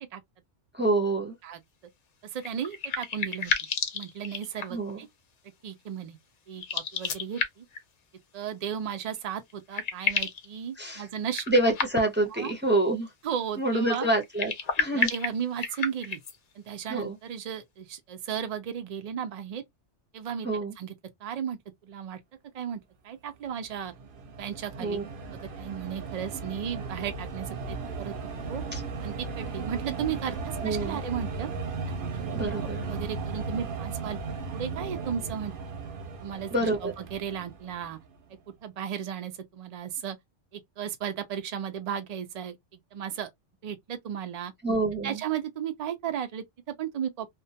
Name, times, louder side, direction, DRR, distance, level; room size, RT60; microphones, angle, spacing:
voice 1, 0.7-1.4 4.7-5.0 10.8-11.1 11.5-13.1 13.6-14.5 14.8-15.1 16.9-17.2 20.4-20.7 24.8-25.0 28.7-28.8 30.6-31.0 32.3-32.8 36.5-36.9 44.6-45.2, right 2 dB, 15° right, 0.5 m, -26 dB
voice 2, 2.2-3.5 3.9-5.1 5.6-6.2 6.5-7.7 8.3-11.4 12.3-12.5 13.2-14.1 14.9-16.2 16.6-19.6 20.1-20.5 20.8-20.9 21.2-22.2 22.5-23.9 24.4-25.0 25.3-28.1 28.4-28.6 29.0-31.5 32.1-35.7 36.2-38.0 38.6-40.2 40.5-43.3 43.6-44.5 45.0-46.4 46.8-47.3, right 8 dB, 85° right, 0.3 m, -35 dB
sound 1, 2.4-4.9 6.5-7.8 9.2-9.3 9.5-10.5 11.3-12.3 14.2-16.4, left 5 dB, 55° left, 0.4 m, -31 dB
sound 2, 23.7-38.2, right 4 dB, 55° right, 0.7 m, -36 dB
2.3 x 2.1 x 2.6 m
omnidirectional pair, 1.2 m